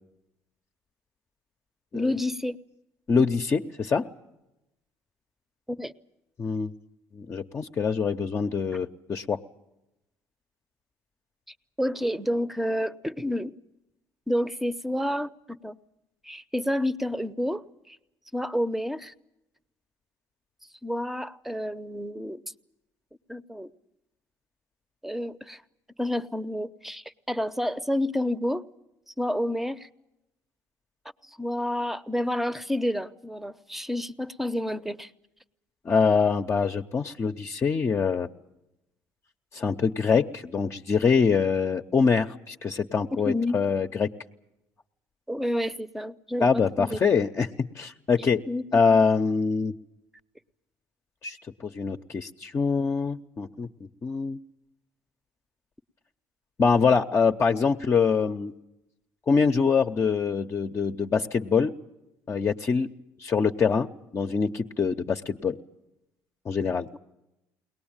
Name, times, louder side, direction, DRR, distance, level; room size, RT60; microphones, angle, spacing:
voice 1, 1.9-2.6 5.7-5.9 11.8-13.5 14.3-15.3 15.6-15.8 16.2-18.0 18.3-19.1 20.8-22.4 23.3-23.7 25.0-25.6 26.0-28.6 29.2-29.9 31.4-35.1 43.1-43.6 45.3-47.0 48.5-48.6, left 1 dB, 5° right, 14 dB, 0.8 m, -29 dB
voice 2, 3.1-4.1 6.4-6.7 7.1-9.4 35.8-38.3 39.5-44.1 46.4-48.4 48.7-49.7 51.2-51.4 51.6-53.7 54.0-54.4 56.6-58.5 59.3-61.7 62.3-62.9 63.2-65.6 66.5-66.9, left 5 dB, 35° left, 4 dB, 0.8 m, -24 dB
22.0 x 19.5 x 8.9 m, 0.93 s
supercardioid pair, 85°, 8 cm